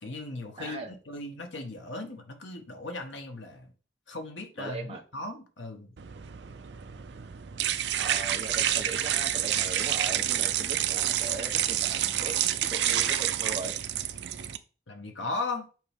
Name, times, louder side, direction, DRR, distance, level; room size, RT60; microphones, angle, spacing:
voice 1, 0.0-3.7 4.1-5.9 14.9-15.6, left 2 dB, 80° left, 1.3 m, -37 dB
voice 2, 0.6-0.9 4.6-5.0 7.9-13.7, right 3 dB, 30° right, 1.0 m, -39 dB
sound 1, 6.0-14.6, right 11 dB, 65° right, 0.5 m, -28 dB
7.7 x 4.6 x 3.6 m
head